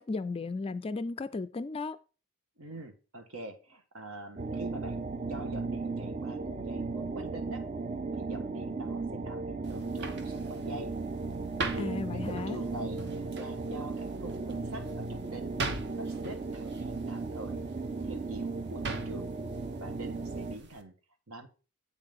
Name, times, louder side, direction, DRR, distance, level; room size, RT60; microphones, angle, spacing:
voice 1, 0.0-2.0 11.8-12.6, left 3 dB, 25° left, 0.3 m, -35 dB
voice 2, 2.6-7.6 8.1-10.9 11.7-15.6 15.9-17.6 18.0-19.3 19.8-20.9 21.3-21.5, right 1 dB, 70° right, 1.4 m, -44 dB
sound 1, 4.4-20.5, right 3 dB, 30° right, 0.5 m, -36 dB
sound 2, 9.6-20.8, right 3 dB, 55° right, 0.9 m, -42 dB
8.2 x 3.8 x 5.2 m
head